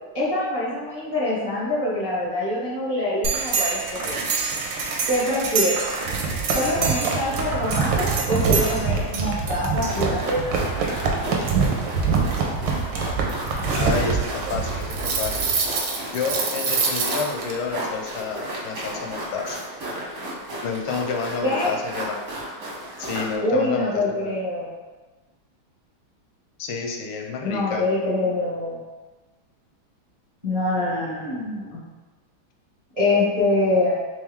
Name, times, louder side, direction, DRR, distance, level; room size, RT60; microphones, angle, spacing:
voice 1, 0.1-4.2 5.1-5.8 6.5-11.0 21.4-21.8 23.4-24.7 27.4-28.8 30.4-31.8 32.9-33.9, left 1 dB, 30° right, -10 dB, 0.7 m, -25 dB
sound 1, 3.2-17.5, right 5 dB, 70° right, 1.2 m, -25 dB
sound 2, 9.8-23.3, right 1 dB, 50° right, 1.3 m, -34 dB
voice 2, 13.7-15.5 16.1-19.6 20.6-22.2 23.0-24.3 26.6-27.8, left 5 dB, 85° left, 2 dB, 1.5 m, -29 dB
3.5 x 3.3 x 3.5 m, 1.2 s
omnidirectional pair, 2.3 m